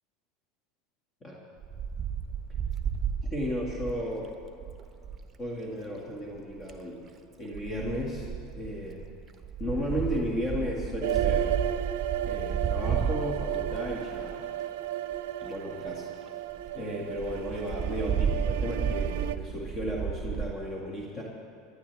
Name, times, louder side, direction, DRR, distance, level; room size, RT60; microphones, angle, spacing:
Wind, 1.6-5.3 6.4-6.8 7.5-14.5 15.1-15.2 15.4-15.5 15.9-16.0 16.3-16.4 16.6-16.7 17.2-20.5, right 7 dB, 20° right, 1.0 m, -33 dB
voice 1, 3.3-4.3 5.4-7.0 7.4-8.3 8.5-9.1 9.6-11.6 12.2-14.4 15.4-16.1 16.7-21.2, equal, 30° left, -2 dB, 2.0 m, -34 dB
sound 1, 11.0-19.4, right 12 dB, 75° right, 0.5 m, -33 dB
20.5 x 11.5 x 3.5 m, 2.6 s
supercardioid pair, 110°, 0 cm